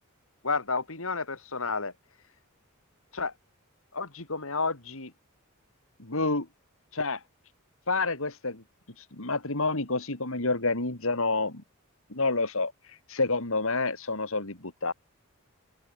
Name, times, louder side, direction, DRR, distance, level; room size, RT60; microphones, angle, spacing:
voice 1, 0.4-1.9 3.1-3.3 3.9-5.1 6.0-6.5 6.9-7.2 7.9-8.6 9.0-11.6 12.1-14.9, left 3 dB, 65° left, 3.8 m, -29 dB
open air
head